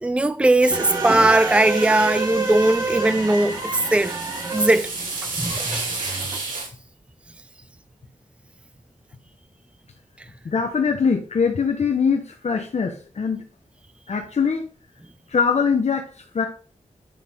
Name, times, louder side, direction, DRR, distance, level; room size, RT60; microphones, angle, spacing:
voice 1, 0.0-4.1 4.5-4.9 5.2-5.9 6.3-6.4, right 2 dB, 10° right, 0.5 m, -19 dB
sound 1, 0.6-6.7, right 3 dB, 90° right, 3.0 m, -33 dB
sound 2, 0.7-6.4, right 3 dB, 25° right, 1.4 m, -28 dB
voice 2, 10.4-13.4 14.1-14.7 15.3-16.1 16.3-16.5, left 6 dB, 55° left, 1.1 m, -22 dB
10.0 x 5.9 x 3.6 m
wide cardioid pair, 130°, 13 cm